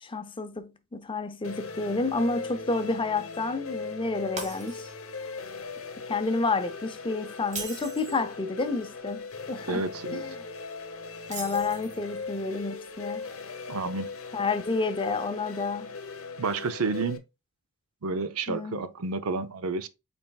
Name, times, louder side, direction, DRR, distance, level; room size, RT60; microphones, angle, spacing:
voice 1, 0.0-4.9 6.1-10.3 11.3-13.3 14.3-16.0 18.5-18.8, left 3 dB, 25° left, 0.5 m, -30 dB
sound 1, 1.4-17.2, left 4 dB, 70° left, 0.8 m, -39 dB
Shatter, 4.4-5.2 5.6-5.8 7.4-8.3 11.2-12.1, right 4 dB, 35° right, 1.6 m, -39 dB
voice 2, 9.7-10.2 13.7-14.1 16.4-17.2 18.0-19.9, right 4 dB, 75° right, 0.6 m, -30 dB
5.5 x 4.2 x 2.3 m
head